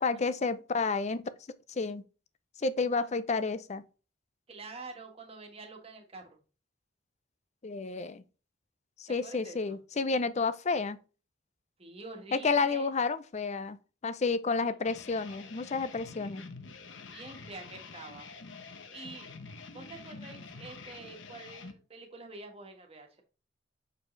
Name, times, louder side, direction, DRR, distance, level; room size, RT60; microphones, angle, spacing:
voice 1, 0.0-1.2 1.8-2.0 2.6-3.8 7.6-8.2 9.0-11.0 12.3-13.8 14.0-16.5, left 4 dB, 40° left, 0.5 m, -30 dB
voice 2, 4.5-6.4 9.1-9.8 11.8-12.9 14.6-14.7 17.1-18.3 18.9-19.3 19.7-23.2, right 3 dB, 35° right, 1.5 m, -47 dB
sound 1, 14.8-21.7, left 4 dB, 90° left, 1.0 m, -47 dB
6.7 x 4.8 x 3.2 m
head